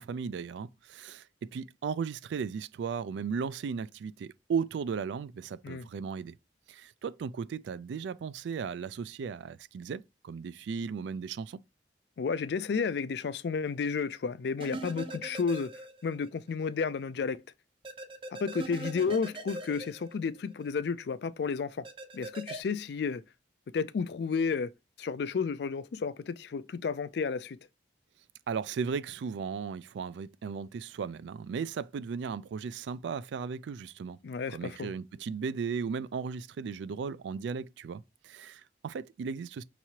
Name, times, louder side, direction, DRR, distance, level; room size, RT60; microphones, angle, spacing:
voice 1, 0.0-6.3 6.7-11.6 28.5-34.2 34.5-39.6, right 6 dB, 75° right, 0.3 m, -36 dB
voice 2, 12.2-15.7 16.0-17.4 18.3-21.9 22.1-23.2 23.7-24.7 25.0-27.6 34.2-34.9, left 5 dB, 65° left, 0.3 m, -32 dB
sound 1, 14.6-16.3 16.6-16.7 17.8-20.7 21.8-22.6, right 1 dB, 30° right, 0.5 m, -41 dB
5.7 x 3.0 x 2.7 m
head